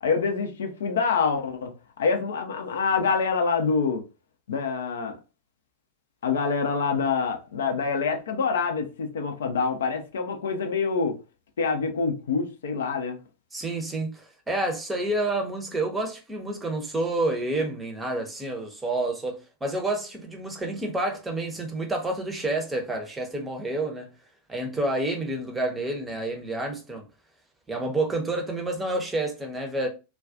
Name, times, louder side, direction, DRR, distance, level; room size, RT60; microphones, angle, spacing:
voice 1, 0.0-4.0 4.5-5.2 6.2-11.2 11.6-13.2, left 5 dB, 65° left, 0.5 m, -26 dB
voice 2, 13.5-24.1 24.5-27.0 27.7-29.9, right 2 dB, 10° right, 0.6 m, -29 dB
2.3 x 2.2 x 2.5 m
figure-of-eight pair, 90°, 0 cm